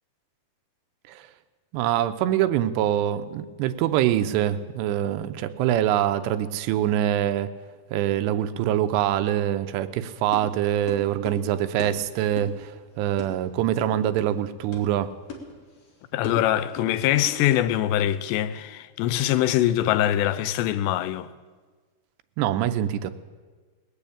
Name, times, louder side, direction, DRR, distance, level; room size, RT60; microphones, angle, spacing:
voice 1, 1.7-7.5 7.9-12.7 13.0-15.1 22.4-23.1, right 11 dB, 85° right, 2.8 m, -24 dB
sound 1, 9.9-17.6, left 3 dB, 50° left, 2.4 m, -41 dB
voice 2, 16.1-21.3, left 12 dB, 85° left, 2.8 m, -23 dB
20.0 x 6.8 x 8.5 m
omnidirectional pair, 4.8 m